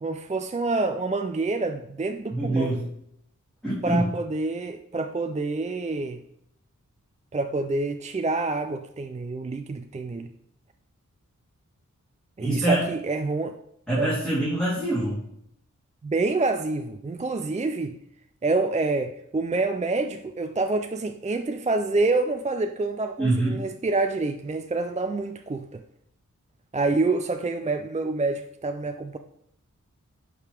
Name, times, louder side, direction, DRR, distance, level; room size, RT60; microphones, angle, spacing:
voice 1, 0.0-2.8 3.8-6.2 7.3-10.3 12.4-13.5 14.0-14.1 16.0-18.0 18.4-25.8 26.7-29.2, right 3 dB, 25° right, 6 dB, 0.4 m, -27 dB
voice 2, 2.3-2.8 3.6-4.0 12.4-12.8 13.9-15.2 23.2-23.6, right 1 dB, 5° left, -10 dB, 3.3 m, -24 dB
10.5 x 5.0 x 3.5 m, 0.74 s
wide cardioid pair, 85°, 31 cm